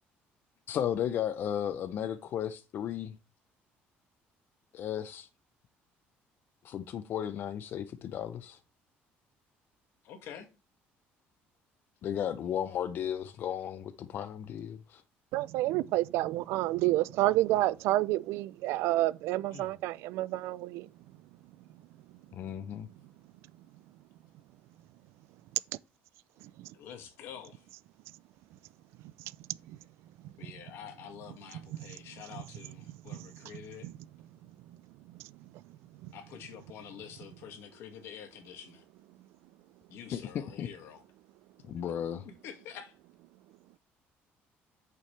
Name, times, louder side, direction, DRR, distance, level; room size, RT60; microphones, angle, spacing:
voice 1, 0.7-3.1 4.7-5.3 6.6-8.6 12.0-15.0 22.3-22.9 40.1-40.7 41.6-42.3, left 9 dB, 50° left, 0.6 m, -34 dB
voice 2, 10.0-10.5 19.5-19.8 26.7-27.7 30.4-33.9 36.1-38.8 39.9-41.0 42.2-42.9, left 8 dB, 70° left, 1.9 m, -47 dB
voice 3, 15.3-20.9 26.6-26.7 29.7-29.8 32.9-33.3 33.8-33.9 35.1-35.2 36.0-36.1, right 16 dB, 85° right, 0.4 m, -29 dB
8.5 x 6.9 x 3.3 m
cardioid pair, 135°, 4 cm